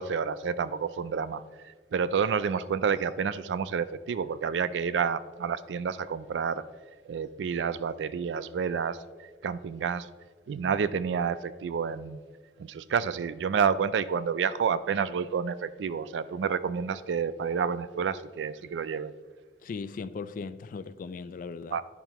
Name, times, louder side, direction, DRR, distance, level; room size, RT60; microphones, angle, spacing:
voice 1, 0.0-1.4 1.9-6.6 7.1-9.0 9.4-10.1 10.5-12.2 12.6-19.1 21.7-21.8, right 6 dB, 90° right, 0.3 m, -29 dB
voice 2, 19.6-21.8, left 5 dB, 50° left, 0.3 m, -38 dB
11.0 x 5.6 x 2.9 m
head